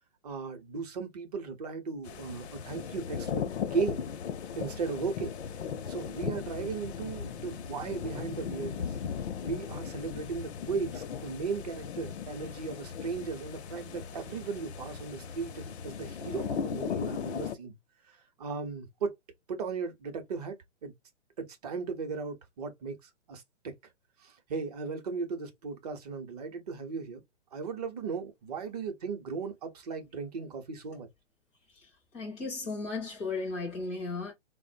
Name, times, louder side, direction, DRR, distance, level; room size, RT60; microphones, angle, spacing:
voice 1, 0.2-4.0 4.6-5.3 5.9-9.0 9.4-17.7 18.1-19.1 19.5-20.6 20.8-20.9 21.4-23.7 24.2-27.2 27.5-31.1, right 5 dB, 35° right, 0.6 m, -36 dB
sound 1, 2.0-17.6, left 7 dB, 65° left, 0.5 m, -37 dB
voice 2, 32.1-34.3, left 3 dB, 10° left, 0.4 m, -35 dB
3.9 x 2.0 x 2.4 m
hypercardioid pair, 150°, 36 cm